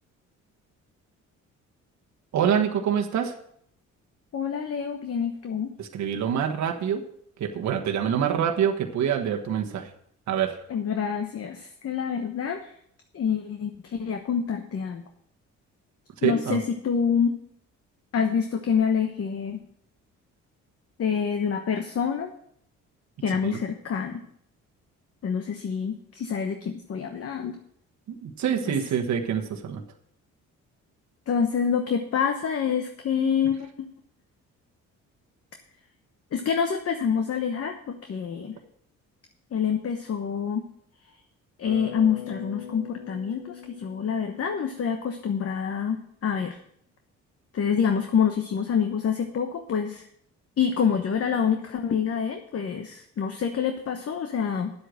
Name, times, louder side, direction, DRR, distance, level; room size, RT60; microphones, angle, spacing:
voice 1, 2.3-3.4 5.8-7.0 7.4-9.9 10.3-10.6 16.2-16.6 23.4-23.6 28.2-29.8, right 8 dB, 70° right, 3 dB, 1.3 m, -26 dB
voice 2, 4.3-5.7 10.7-12.7 13.1-15.0 16.2-17.3 18.1-19.6 21.0-22.3 23.2-24.2 25.2-27.6 31.3-33.9 36.3-38.5 39.5-40.6 41.6-46.6 47.5-50.1 50.6-54.7, left 7 dB, 50° left, 6 dB, 1.1 m, -27 dB
Bass guitar, 41.7-45.8, left 7 dB, 85° left, 2.9 m, -42 dB
9.9 x 8.1 x 6.3 m, 0.68 s
cardioid pair, 90°, 30 cm